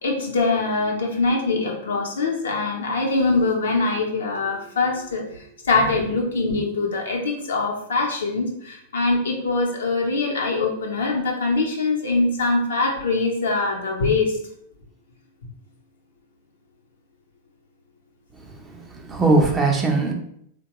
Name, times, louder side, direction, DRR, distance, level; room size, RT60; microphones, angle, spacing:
voice 1, 0.0-14.4, left 3 dB, 80° left, 0.8 m, -23 dB
voice 2, 18.6-20.1, right 3 dB, 20° right, 0.6 m, -20 dB
3.5 x 2.2 x 2.9 m
hypercardioid pair, 105°, 0 cm